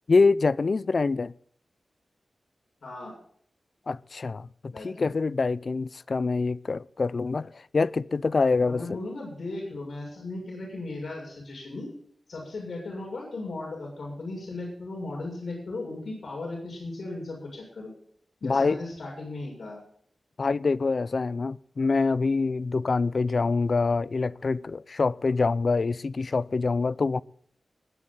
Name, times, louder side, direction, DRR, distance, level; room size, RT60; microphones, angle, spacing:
voice 1, 0.1-1.3 3.9-8.8 18.4-18.8 20.4-27.2, left 4 dB, 50° left, 0.5 m, -25 dB
voice 2, 2.8-3.2 4.7-5.1 8.7-11.9 12.3-17.9 18.4-19.8, left 2 dB, 65° left, 6.9 m, -36 dB
21.0 x 9.9 x 4.0 m
wide cardioid pair, 130°, 0 cm